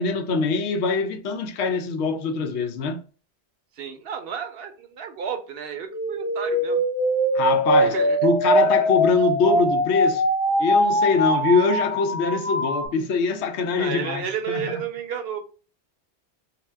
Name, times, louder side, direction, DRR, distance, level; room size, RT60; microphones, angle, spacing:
voice 1, 0.0-3.0 7.3-7.9 8.2-10.3 10.6-14.7, left 5 dB, 80° left, 0.9 m, -23 dB
voice 2, 3.7-6.8 7.8-8.2 13.8-15.4, right 7 dB, 65° right, 0.8 m, -32 dB
sound 1, 5.9-12.9, right 1 dB, 55° left, 1.1 m, -22 dB
2.8 x 2.1 x 3.2 m
omnidirectional pair, 1.1 m